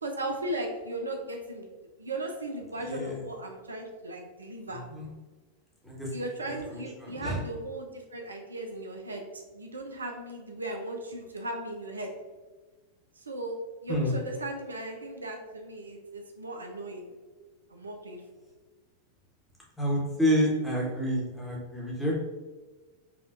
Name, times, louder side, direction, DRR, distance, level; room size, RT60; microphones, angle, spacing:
voice 1, 0.0-4.8 6.1-12.1 13.1-13.6 13.8-17.1 17.7-18.2, right 1 dB, 75° right, 3 dB, 0.4 m, -37 dB
voice 2, 2.9-3.2 4.7-5.1 5.8-6.1 6.5-7.4 13.9-14.1 19.8-22.2, equal, 5° left, -4 dB, 1.1 m, -29 dB
4.9 x 2.4 x 2.5 m, 1.3 s
figure-of-eight pair, 90°, 0 cm